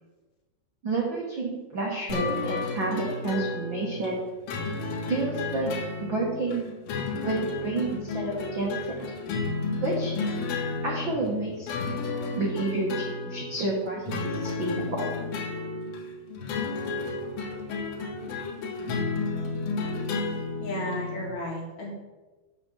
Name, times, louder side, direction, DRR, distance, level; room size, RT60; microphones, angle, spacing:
voice 1, 0.8-4.2 5.1-5.7 6.0-6.7 7.2-9.0 9.8-10.1 10.8-11.7 12.3-15.0, right 3 dB, 70° right, -3 dB, 1.1 m, -30 dB
sound 1, 2.1-21.3, left 3 dB, 70° left, 2.9 m, -32 dB
voice 2, 20.6-21.9, left 1 dB, 55° left, -2 dB, 2.7 m, -33 dB
7.9 x 5.3 x 7.1 m, 1.2 s
omnidirectional pair, 4.6 m